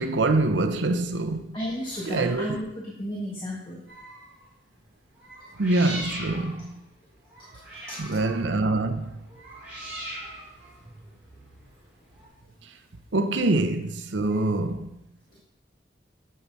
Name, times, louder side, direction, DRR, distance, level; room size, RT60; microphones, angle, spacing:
voice 1, 0.0-1.6 2.1-2.6 5.6-6.7 8.0-9.1 13.1-14.9, right 2 dB, 90° right, 0.7 m, -25 dB
voice 2, 1.5-3.8 7.9-8.1 10.8-10.9 14.3-14.5, equal, 25° left, 1.5 m, -33 dB
sound 1, 3.9-4.4 5.2-12.3, right 1 dB, 10° right, 4.2 m, -41 dB
10.0 x 7.7 x 4.0 m
head